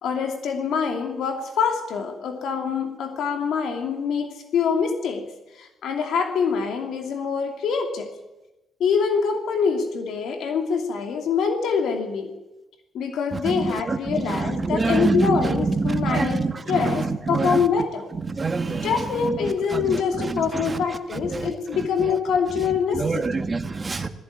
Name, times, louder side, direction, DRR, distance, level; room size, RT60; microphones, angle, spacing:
voice 1, 0.0-5.2 5.6-8.1 8.8-12.3 12.9-18.1 18.8-23.4 24.0-24.1, left 6 dB, 75° left, 5 dB, 2.7 m, -25 dB
voice 2, 13.4-14.0 14.7-15.3 15.7-16.5 17.3-17.6 18.3-18.9 21.3-21.5 23.0-24.1, right 3 dB, 30° right, 8 dB, 1.7 m, -24 dB
18.0 x 15.0 x 9.6 m, 1.0 s
cardioid pair, 90°, 0 cm